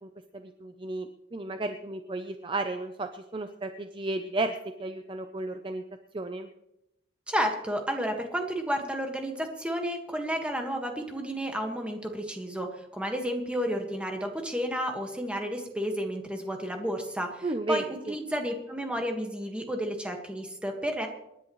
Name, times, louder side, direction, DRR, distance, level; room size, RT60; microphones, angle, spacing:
voice 1, 0.0-5.8 6.1-6.5 17.4-18.1, right 2 dB, 30° right, 7 dB, 0.6 m, -33 dB
voice 2, 7.3-21.1, equal, 5° right, 3 dB, 1.6 m, -31 dB
27.0 x 10.0 x 3.1 m, 0.87 s
head